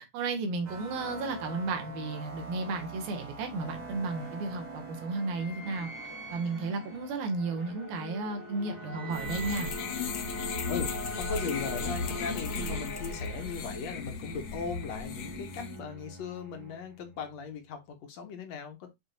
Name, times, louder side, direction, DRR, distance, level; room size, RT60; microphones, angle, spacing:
voice 1, 0.0-5.9 6.3-9.7, right 3 dB, 80° right, 3.4 m, -33 dB
sound 1, 0.6-9.3, right 2 dB, 50° right, 0.9 m, -46 dB
sound 2, 3.8-17.2, equal, 10° right, 1.4 m, -42 dB
sound 3, 9.1-15.8, left 5 dB, 85° left, 1.2 m, -36 dB
voice 2, 10.4-10.9 11.2-18.9, left 5 dB, 55° left, 2.4 m, -38 dB
7.7 x 5.0 x 2.6 m
omnidirectional pair, 4.2 m